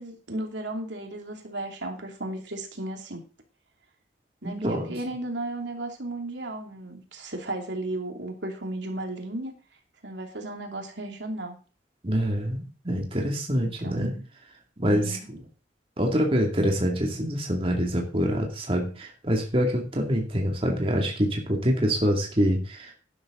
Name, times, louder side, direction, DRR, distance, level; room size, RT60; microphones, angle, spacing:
voice 1, 0.0-3.2 4.4-9.5 10.0-11.6 13.5-14.2 14.9-15.2, right 1 dB, 75° right, 2 dB, 2.8 m, -35 dB
voice 2, 4.4-4.9 12.0-14.1 14.8-15.4 16.0-22.9, equal, 30° right, 0 dB, 2.5 m, -25 dB
12.0 x 11.5 x 3.9 m, 0.35 s
head